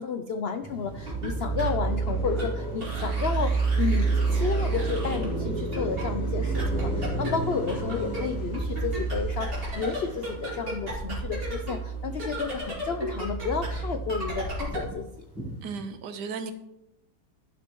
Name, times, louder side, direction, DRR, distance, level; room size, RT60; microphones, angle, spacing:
voice 1, 0.0-15.1, left 5 dB, 85° left, 8 dB, 0.5 m, -32 dB
Car passing by, 0.6-13.1 13.4-15.9, right 1 dB, 5° right, 3.3 m, -37 dB
sound 1, 0.9-14.9, right 3 dB, 30° right, 2.8 m, -30 dB
voice 2, 15.6-16.5, right 5 dB, 75° right, 9 dB, 1.5 m, -35 dB
11.5 x 11.0 x 3.1 m, 0.86 s
omnidirectional pair, 1.8 m